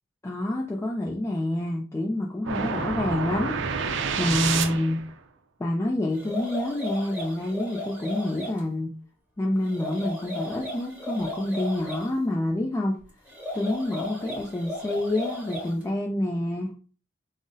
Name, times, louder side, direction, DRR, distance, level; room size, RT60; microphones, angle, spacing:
voice 1, 0.2-3.7 4.2-5.0 5.6-8.9 9.4-13.0 13.5-16.7, left 1 dB, 15° left, -1 dB, 0.3 m, -27 dB
sound 1, 2.5-5.1, right 5 dB, 70° right, 0.4 m, -28 dB
sound 2, 6.1-8.6 9.6-12.1 13.3-15.8, left 1 dB, 10° right, 1.1 m, -36 dB
2.6 x 2.0 x 3.7 m, 0.38 s
head